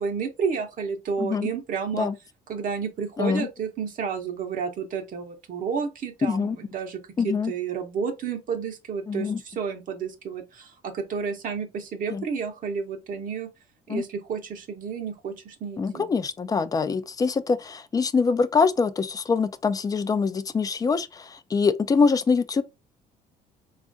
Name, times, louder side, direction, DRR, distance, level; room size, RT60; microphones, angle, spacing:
voice 1, 0.0-2.1 2.5-7.0 7.2-13.5 13.9-16.1, right 6 dB, 50° right, 0.8 m, -31 dB
voice 2, 1.2-1.5 1.9-2.1 3.2-3.5 6.2-6.6 7.2-7.5 9.1-9.4 12.1-12.2 13.9-14.0 15.8-22.6, left 5 dB, 20° left, 0.3 m, -24 dB
4.1 x 2.4 x 2.6 m
cardioid pair, 110°, 17 cm